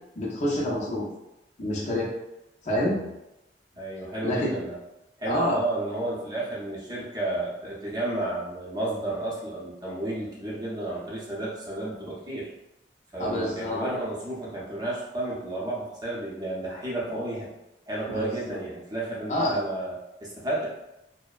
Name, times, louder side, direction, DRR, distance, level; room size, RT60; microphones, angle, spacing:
voice 1, 0.2-1.1 1.6-2.1 2.6-3.0 4.2-4.5 5.3-5.6 13.2-14.0 18.1-18.3 19.3-19.6, left 1 dB, 40° left, -4 dB, 0.5 m, -27 dB
voice 2, 2.7-3.1 3.7-4.8 5.2-12.5 13.1-17.5 17.9-20.0 20.2-20.7, right 2 dB, 25° right, -6 dB, 0.7 m, -32 dB
2.6 x 2.0 x 2.3 m, 0.91 s
head